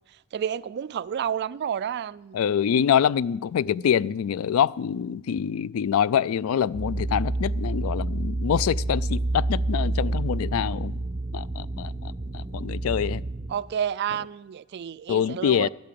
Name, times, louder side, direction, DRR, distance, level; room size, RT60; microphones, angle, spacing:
voice 1, 0.3-2.4 13.5-15.7, right 8 dB, 50° right, 0.3 m, -30 dB
voice 2, 2.3-11.0 11.3-11.9 12.3-13.2 15.1-15.7, left 8 dB, 80° left, 0.3 m, -25 dB
sound 1, 6.7-13.5, right 2 dB, 30° right, 1.0 m, -28 dB
12.0 x 8.6 x 7.6 m
head